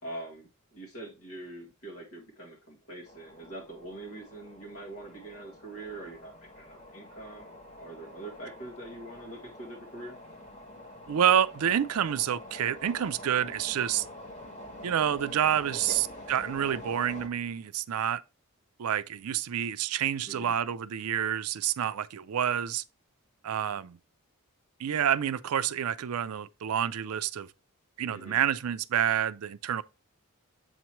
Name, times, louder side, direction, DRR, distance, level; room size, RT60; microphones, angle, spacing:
voice 1, 0.0-10.2 15.7-16.0 20.3-20.5 28.1-28.4, right 2 dB, 70° left, 1.8 m, -44 dB
sound 1, 3.0-17.3, left 1 dB, 35° left, 1.7 m, -46 dB
voice 2, 11.1-14.1 14.8-18.2 18.8-22.8 23.4-24.0 24.8-27.5 28.0-29.8, right 9 dB, 75° right, 0.4 m, -28 dB
7.8 x 3.0 x 4.5 m
head